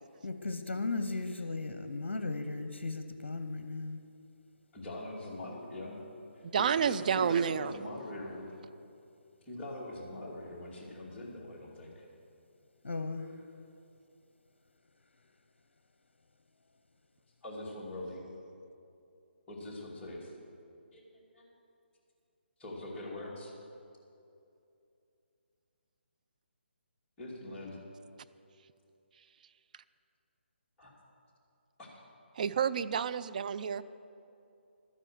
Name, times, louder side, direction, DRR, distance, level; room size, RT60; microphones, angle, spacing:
voice 1, 0.2-4.0 12.8-13.4, left 3 dB, 75° left, 8 dB, 0.8 m, -36 dB
voice 2, 4.7-6.0 6.3-8.5 9.5-12.0 17.4-18.2 19.5-20.3 20.9-21.0 21.3-21.5 22.6-23.5 27.2-27.8 30.8-30.9 31.8-31.9, left 1 dB, 15° left, -7 dB, 2.9 m, -42 dB
voice 3, 6.5-7.7 32.4-33.8, right 7 dB, 40° right, 13 dB, 0.4 m, -29 dB
12.5 x 10.0 x 6.3 m, 2.6 s
figure-of-eight pair, 150°, 6 cm